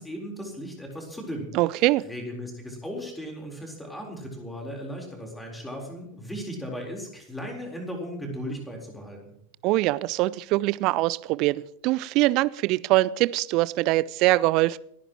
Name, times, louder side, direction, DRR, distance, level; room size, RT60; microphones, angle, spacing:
voice 1, 0.0-9.3, equal, 5° left, 0 dB, 4.1 m, -37 dB
voice 2, 1.5-2.0 9.6-14.8, right 19 dB, 40° right, 19 dB, 0.5 m, -23 dB
30.0 x 10.0 x 3.1 m, 0.73 s
figure-of-eight pair, 90°, 0 cm